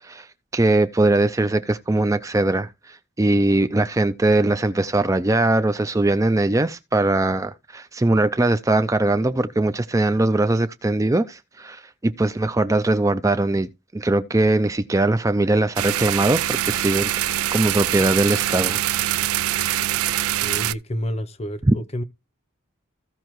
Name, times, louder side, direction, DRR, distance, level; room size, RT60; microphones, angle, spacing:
voice 1, 0.0-17.1 17.5-18.8 21.6-21.7, right 2 dB, 15° right, 0.4 m, -21 dB
sound 1, 15.8-20.7, right 13 dB, 90° right, 0.4 m, -24 dB
voice 2, 20.4-22.0, equal, 30° left, 0.7 m, -29 dB
15.0 x 5.4 x 3.0 m
head